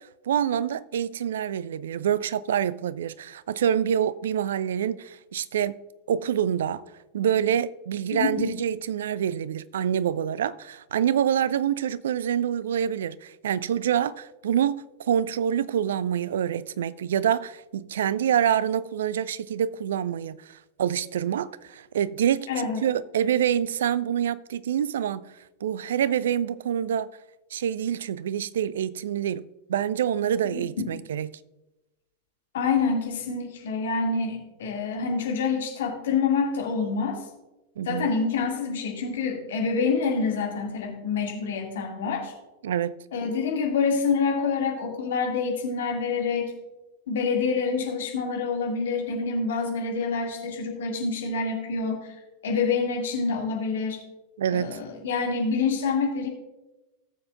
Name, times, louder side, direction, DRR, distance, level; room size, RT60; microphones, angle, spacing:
voice 1, 0.3-5.8 6.1-6.8 7.1-25.2 25.6-27.1 27.5-29.4 29.7-31.3 37.8-38.1 42.6-43.0 54.4-54.7, right 9 dB, 60° right, 0.3 m, -26 dB
voice 2, 8.1-8.5 22.5-22.8 30.4-30.6 32.5-37.2 37.9-42.3 43.1-46.5 47.1-52.1 52.4-54.0 54.5-56.3, left 5 dB, 60° left, 2.1 m, -27 dB
18.0 x 7.2 x 2.4 m
figure-of-eight pair, 90°, 0 cm